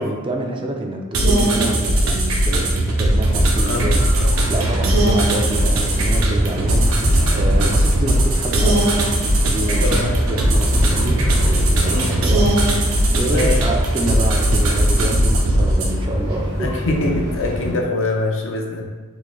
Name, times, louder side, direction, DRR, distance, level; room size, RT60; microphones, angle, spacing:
voice 1, 0.0-4.0 4.5-7.1 7.3-8.9 9.4-12.7 13.1-16.7, right 1 dB, 25° right, 1 dB, 0.3 m, -27 dB
sound 1, 1.1-15.9, right 1 dB, 70° right, 0.5 m, -18 dB
sound 2, 3.1-17.7, equal, 90° right, 1.3 m, -26 dB
sound 3, 4.8-11.5, right 1 dB, 80° left, 1.0 m, -33 dB
voice 2, 11.8-12.2 13.3-13.5 16.6-18.8, left 2 dB, 65° left, 1 dB, 0.5 m, -23 dB
3.7 x 2.5 x 3.0 m, 1.3 s
head